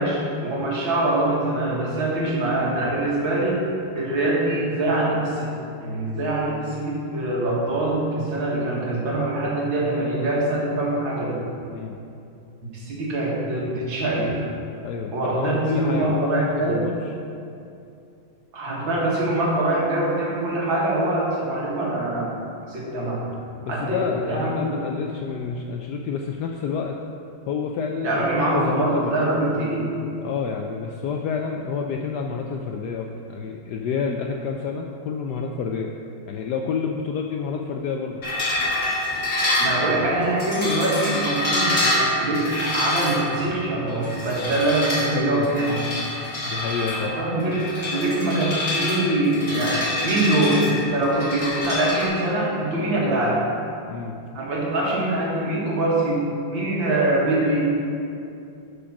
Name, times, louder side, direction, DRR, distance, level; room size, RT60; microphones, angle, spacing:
voice 1, 0.0-3.6 3.9-5.5 5.8-11.4 12.7-14.4 15.1-16.8 18.5-22.3 22.7-23.2 23.7-24.0 24.3-24.8 28.0-29.9 39.6-45.8 46.9-53.5 54.3-56.2 56.5-57.7, right 1 dB, 70° right, -5 dB, 2.4 m, -24 dB
voice 2, 14.8-17.1 23.6-27.0 27.5-28.3 28.5-29.5 30.2-35.9 36.3-38.2 45.0-45.7 46.4-47.2 53.9-54.2, left 5 dB, 75° left, 2 dB, 0.9 m, -29 dB
sound 1, 38.2-52.1, left 1 dB, 45° left, 2.4 m, -26 dB
8.9 x 5.1 x 5.8 m, 2.6 s
omnidirectional pair, 2.2 m